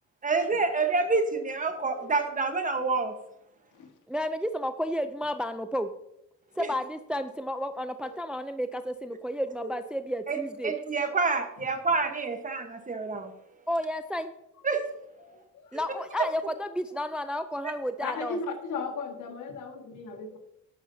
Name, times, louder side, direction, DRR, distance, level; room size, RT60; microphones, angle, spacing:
voice 1, 0.2-3.1 6.6-6.7 10.3-10.4 10.6-13.3 14.6-14.8 15.7-15.8 16.2-16.3 17.6-17.7, right 4 dB, 25° right, 6 dB, 1.2 m, -27 dB
voice 2, 4.1-5.9 6.6-10.7 13.7-14.3 15.7-18.4, equal, 5° right, 10 dB, 0.4 m, -32 dB
voice 3, 15.2-16.0 18.0-20.4, left 4 dB, 80° left, 5 dB, 1.7 m, -37 dB
11.0 x 9.4 x 2.7 m, 0.84 s
cardioid pair, 115°, 30 cm